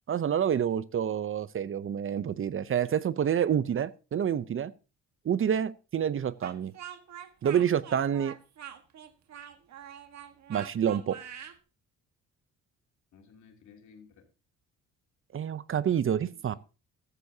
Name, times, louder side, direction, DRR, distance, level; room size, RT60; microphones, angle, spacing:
voice 1, 0.1-4.7 5.2-6.7 7.4-8.3 10.5-11.2 15.3-16.5, right 9 dB, 45° right, 17 dB, 0.7 m, -28 dB
Speech, 6.4-11.6, right 9 dB, 65° right, 1.6 m, -45 dB
voice 2, 13.1-14.3 16.1-16.6, left 5 dB, 70° left, 3 dB, 3.0 m, -56 dB
13.5 x 13.0 x 2.8 m, 0.31 s
cardioid pair, 90°, 30 cm